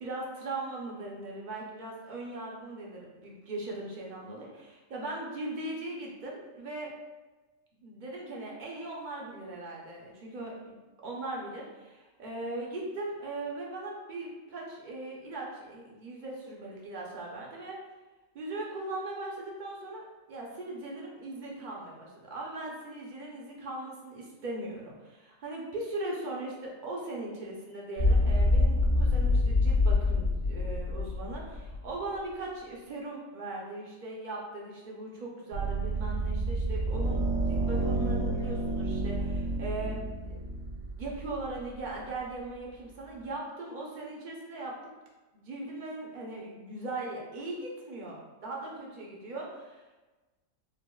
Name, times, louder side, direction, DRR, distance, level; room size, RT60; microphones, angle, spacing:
voice 1, 0.0-6.9 7.8-17.8 18.3-40.4 41.0-44.9 45.3-49.8, right 2 dB, 50° right, -3 dB, 0.6 m, -39 dB
sound 1, 28.0-31.9, left 2 dB, 70° left, 1.5 m, -25 dB
sound 2, 35.5-42.0, right 3 dB, 80° right, 1.1 m, -31 dB
4.9 x 2.0 x 2.3 m, 1.2 s
omnidirectional pair, 1.4 m